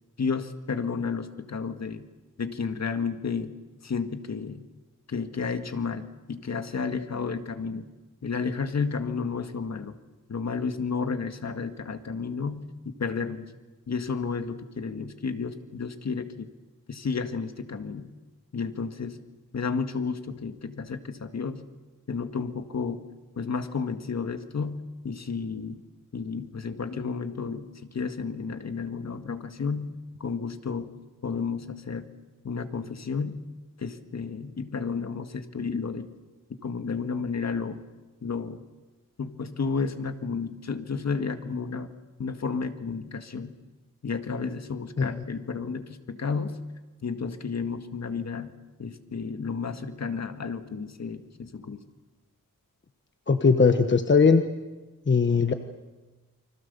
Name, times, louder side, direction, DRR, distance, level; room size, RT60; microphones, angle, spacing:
voice 1, 0.2-2.1 2.4-3.5 3.8-4.6 5.1-7.9 8.2-10.0 10.3-13.5 13.9-16.5 16.9-18.1 18.5-19.2 19.5-21.6 22.1-23.0 23.4-25.8 26.1-30.9 31.2-32.1 32.4-33.4 33.8-36.1 36.6-37.8 38.2-38.6 39.2-41.9 42.2-43.5 44.0-46.6 47.0-48.5 48.8-51.8, left 5 dB, 55° left, 7 dB, 1.9 m, -32 dB
voice 2, 53.3-54.4 55.1-55.5, left 5 dB, 35° left, 7 dB, 1.3 m, -19 dB
29.5 x 25.0 x 6.9 m, 1.2 s
wide cardioid pair, 115°, 33 cm